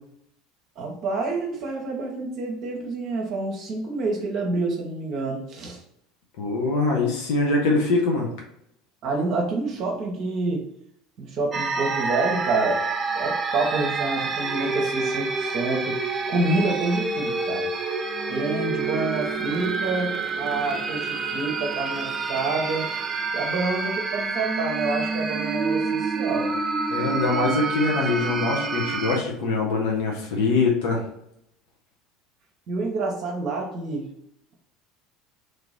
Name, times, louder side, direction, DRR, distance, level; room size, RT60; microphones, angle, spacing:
voice 1, 0.8-5.8 9.0-10.6 11.2-12.8 13.1-16.0 16.3-17.7 18.3-22.9 23.3-26.5 32.7-34.0, right 3 dB, 45° right, 0 dB, 0.9 m, -28 dB
voice 2, 6.4-8.3 26.9-31.0, left 3 dB, 60° left, -1 dB, 0.9 m, -23 dB
sound 1, 11.5-29.2, right 4 dB, 25° right, 0.5 m, -28 dB
3.3 x 2.9 x 3.8 m, 0.76 s
figure-of-eight pair, 70°, 0 cm